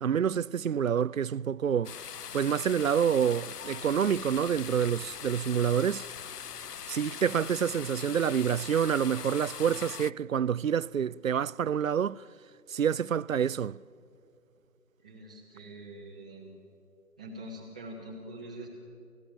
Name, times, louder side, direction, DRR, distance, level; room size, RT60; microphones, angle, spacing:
voice 1, 0.0-2.0 2.3-6.0 6.9-12.2 12.7-13.8, right 8 dB, 60° right, 0.5 m, -27 dB
sound 1, 1.8-10.1, left 8 dB, 85° left, 0.6 m, -41 dB
voice 2, 15.0-16.5 17.2-18.7, right 1 dB, 5° right, 0.8 m, -44 dB
28.0 x 15.0 x 10.0 m
figure-of-eight pair, 155°, 46 cm